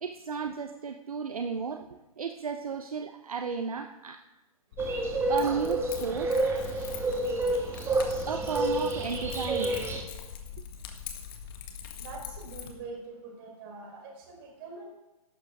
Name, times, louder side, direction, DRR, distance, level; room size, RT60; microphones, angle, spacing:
voice 1, 0.0-1.9 2.2-4.2 5.3-6.4 8.3-9.9, right 6 dB, 70° right, 8 dB, 0.8 m, -33 dB
Keys jangling, 4.7-12.7, left 8 dB, 35° left, 1.6 m, -43 dB
sound 1, 4.8-10.0, right 2 dB, 15° right, 1.6 m, -29 dB
voice 2, 12.0-14.8, right 4 dB, 40° right, 0 dB, 4.7 m, -44 dB
14.5 x 12.0 x 3.8 m, 1.1 s
figure-of-eight pair, 120°, 19 cm